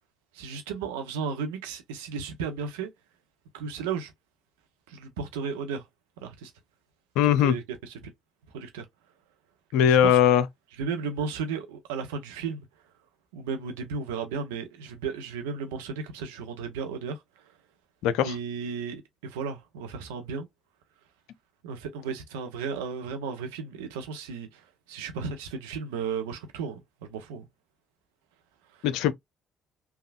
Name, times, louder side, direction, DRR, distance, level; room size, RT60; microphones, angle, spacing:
voice 1, 0.3-2.9 3.5-4.1 4.9-5.8 6.2-6.5 7.2-8.1 8.5-8.8 9.9-10.2 10.8-12.6 13.3-17.2 18.2-20.5 21.6-24.6 24.9-26.8 27.1-27.5, right 5 dB, 80° right, 0.7 m, -34 dB
voice 2, 7.2-7.5 9.7-10.4 18.0-18.3 28.8-29.1, left 9 dB, 70° left, 0.4 m, -20 dB
3.4 x 2.3 x 2.2 m
hypercardioid pair, 50°, 0 cm